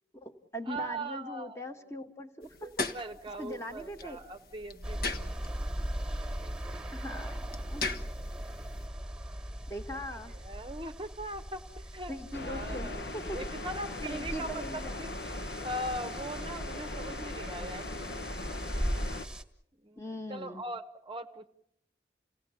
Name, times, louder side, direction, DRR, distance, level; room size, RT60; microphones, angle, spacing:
voice 1, 0.1-2.7 3.4-4.2 6.9-7.8 9.7-10.3 12.1-13.4 14.0-15.0 20.0-20.6, equal, 15° left, 6 dB, 1.4 m, -41 dB
voice 2, 0.7-1.6 2.6-5.4 5.8-6.9 9.9-12.1 12.4-18.3 19.8-21.5, right 1 dB, 30° right, 7 dB, 0.8 m, -41 dB
sound 1, 2.4-8.9, left 3 dB, 55° left, 1.3 m, -40 dB
sound 2, 4.8-19.4, equal, 5° right, 1.6 m, -39 dB
sound 3, 12.3-19.3, left 2 dB, 70° left, 1.0 m, -40 dB
30.0 x 17.5 x 7.0 m, 0.76 s
head